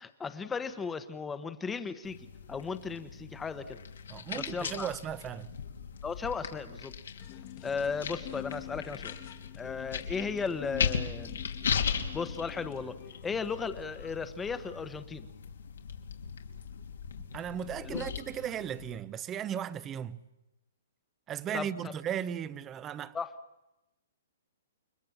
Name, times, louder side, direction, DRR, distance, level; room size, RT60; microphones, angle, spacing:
voice 1, 0.0-2.2 2.5-3.8 4.4-4.9 6.0-6.9 7.6-9.1 9.6-11.4 12.1-15.3 17.8-18.1 21.5-21.9 23.1-23.3, left 5 dB, 10° left, 1.2 m, -36 dB
sound 1, 2.0-19.0, left 7 dB, 85° left, 3.1 m, -38 dB
voice 2, 4.1-5.5 17.2-20.2 21.3-23.2, right 9 dB, 20° right, 0.9 m, -36 dB
sound 2, 7.2-13.7, left 16 dB, 40° left, 1.6 m, -47 dB
29.0 x 22.5 x 7.3 m
hypercardioid pair, 155°, 0 cm